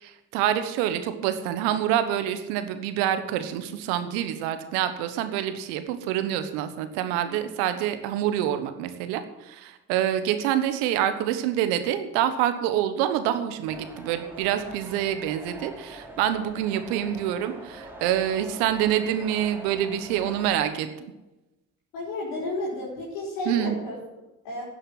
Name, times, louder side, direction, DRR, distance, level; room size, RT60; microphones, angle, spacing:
voice 1, 0.0-20.9 23.5-23.7, right 11 dB, 85° right, 10 dB, 1.3 m, -26 dB
sound 1, 13.7-20.6, right 1 dB, 5° right, 3.4 m, -44 dB
voice 2, 21.9-24.6, left 2 dB, 80° left, -5 dB, 4.1 m, -32 dB
11.5 x 7.8 x 9.7 m, 1.0 s
hypercardioid pair, 45°, 43 cm